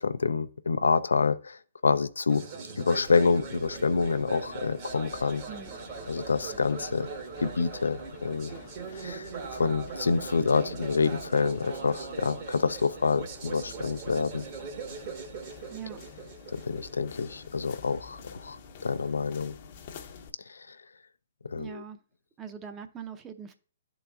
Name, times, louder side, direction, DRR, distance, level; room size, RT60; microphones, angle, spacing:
voice 1, 0.0-2.4 2.8-5.4 6.1-7.1 7.4-8.5 8.9-14.4 16.5-18.6 18.8-19.5 20.5-20.8 21.5-21.8, left 4 dB, 85° left, 0.4 m, -27 dB
sound 1, 2.3-18.1, right 5 dB, 45° right, 1.1 m, -41 dB
sound 2, 3.1-20.3, left 5 dB, 45° left, 0.7 m, -49 dB
voice 2, 5.5-5.8 15.7-16.0 21.6-22.0 22.4-23.5, right 8 dB, 20° right, 0.6 m, -41 dB
11.5 x 3.9 x 2.3 m
hypercardioid pair, 135°, 0 cm